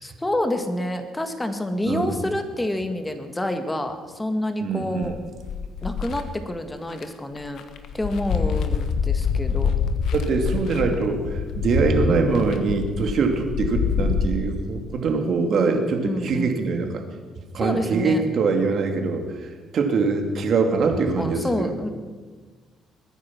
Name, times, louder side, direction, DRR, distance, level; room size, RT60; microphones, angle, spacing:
voice 1, 0.0-5.2 5.8-7.6 7.9-9.7 16.0-16.6 17.6-18.2 21.2-21.9, left 1 dB, 10° left, 7 dB, 1.8 m, -28 dB
voice 2, 4.6-5.1 10.1-17.0 17.5-21.9, right 4 dB, 60° right, 4 dB, 2.5 m, -23 dB
sound 1, 5.0-6.2 6.9-7.0 7.4-14.2, left 6 dB, 65° left, 1.4 m, -26 dB
22.0 x 10.0 x 6.0 m, 1.4 s
cardioid pair, 100°, 0 cm